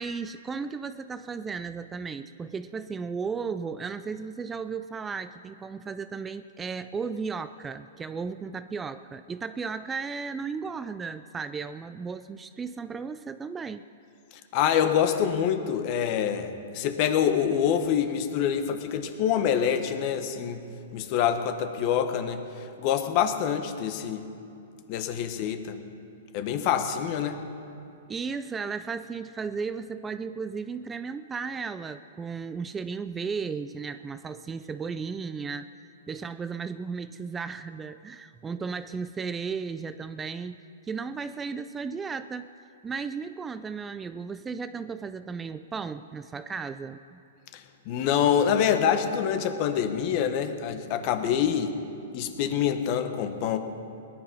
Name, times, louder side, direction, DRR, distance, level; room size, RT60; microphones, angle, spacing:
voice 1, 0.0-13.8 28.1-35.7 36.1-42.5 42.8-47.2, right 5 dB, 15° right, 12 dB, 0.4 m, -35 dB
voice 2, 14.5-20.6 20.9-24.3 24.9-25.8 26.3-27.4 47.5-51.8 52.1-53.6, left 8 dB, 45° left, 8 dB, 1.3 m, -26 dB
18.5 x 11.0 x 5.5 m, 2.7 s
hypercardioid pair, 130°, 0 cm